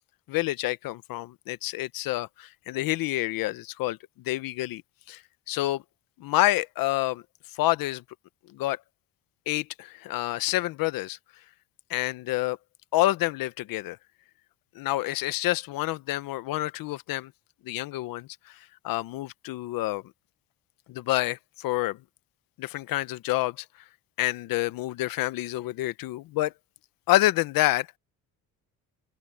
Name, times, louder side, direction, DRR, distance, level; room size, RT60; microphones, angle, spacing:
voice 1, 0.3-4.0 4.2-4.8 5.1-5.2 5.5-5.8 6.2-7.2 7.5-8.0 8.5-8.8 9.5-11.2 11.9-12.6 12.9-14.0 14.7-17.3 17.6-18.6 18.8-20.0 20.9-22.0 22.6-23.6 24.2-26.5 27.1-28.0, left 17 dB, 80° left, 1.0 m, -28 dB
open air
cardioid pair, 100°, 34 cm